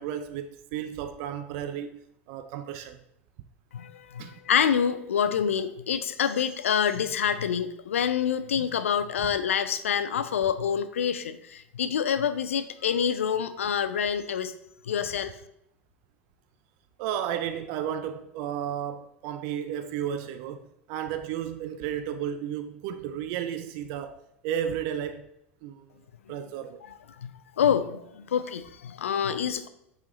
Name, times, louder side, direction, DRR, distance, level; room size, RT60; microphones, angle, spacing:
voice 1, 0.0-2.0 2.3-3.0 4.2-4.4 17.0-25.3 25.6-25.9 26.3-26.8, right 9 dB, 50° right, 0.5 m, -33 dB
voice 2, 3.7-14.5 14.9-15.3 27.2-27.3 27.6-29.7, left 8 dB, 75° left, 0.5 m, -27 dB
8.2 x 5.0 x 3.1 m
figure-of-eight pair, 80°, 7 cm